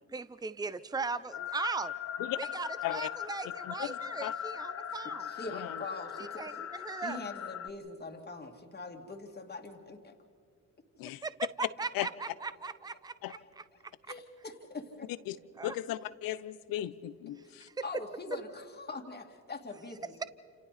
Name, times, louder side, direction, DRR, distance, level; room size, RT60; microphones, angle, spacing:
voice 1, 0.1-1.9 2.4-5.3 6.2-7.2 11.2-13.6 15.6-15.8 17.6-17.7, right 4 dB, 10° right, 14 dB, 0.8 m, -38 dB
sound 1, 1.3-7.7, left 9 dB, 50° left, 0.8 m, -40 dB
voice 2, 4.9-6.7 7.0-10.2 13.3-13.4 14.1-15.1 17.4-20.2, left 3 dB, 30° left, 2 dB, 2.5 m, -43 dB
voice 3, 15.6-17.7, left 14 dB, 85° left, 16 dB, 0.8 m, -36 dB
29.0 x 28.0 x 4.2 m, 2.1 s
supercardioid pair, 70°, 34 cm